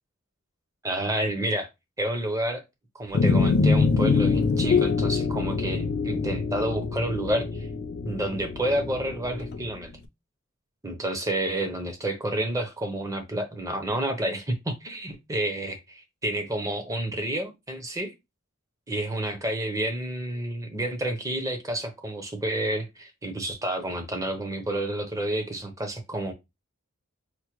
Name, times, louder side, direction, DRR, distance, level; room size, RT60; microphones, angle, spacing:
voice 1, 0.8-1.7 2.0-2.6 2.9-7.7 8.0-9.9 10.8-18.1 18.9-26.3, right 1 dB, 15° right, 0.6 m, -29 dB
sound 1, 3.1-9.7, left 4 dB, 50° left, 0.4 m, -24 dB
4.4 x 2.1 x 3.0 m
head